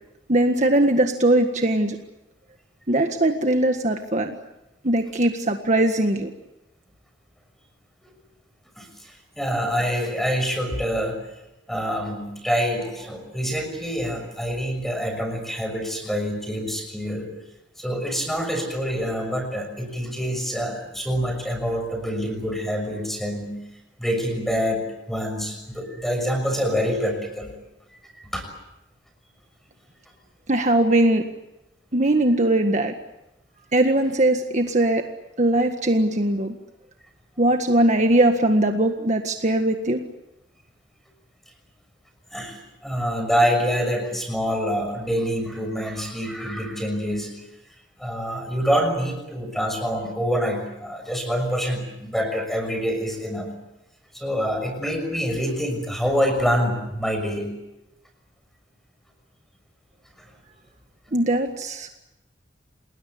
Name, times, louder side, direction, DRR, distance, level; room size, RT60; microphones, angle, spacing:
voice 1, 0.3-2.0 2.9-4.4 4.8-6.3 30.5-31.3 31.9-32.9 33.7-35.0 35.4-36.5 37.4-40.0 61.1-61.9, right 1 dB, 40° right, 5 dB, 1.7 m, -20 dB
voice 2, 8.8-11.2 11.7-17.3 17.8-23.5 24.0-27.5 28.2-28.5 42.3-47.3 48.0-53.5 54.1-57.5, equal, ahead, 5 dB, 6.2 m, -26 dB
29.5 x 20.5 x 8.6 m, 0.94 s
head